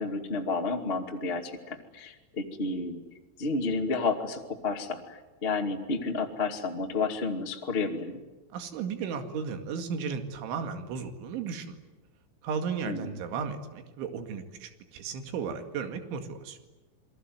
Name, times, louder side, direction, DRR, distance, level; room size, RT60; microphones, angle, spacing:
voice 1, 0.0-3.0 3.4-8.2 12.9-13.1, left 3 dB, 50° left, 3 dB, 0.6 m, -31 dB
voice 2, 8.5-11.8 12.4-16.6, right 6 dB, 70° right, 7 dB, 4.4 m, -35 dB
28.5 x 22.0 x 9.4 m, 1.2 s
omnidirectional pair, 5.8 m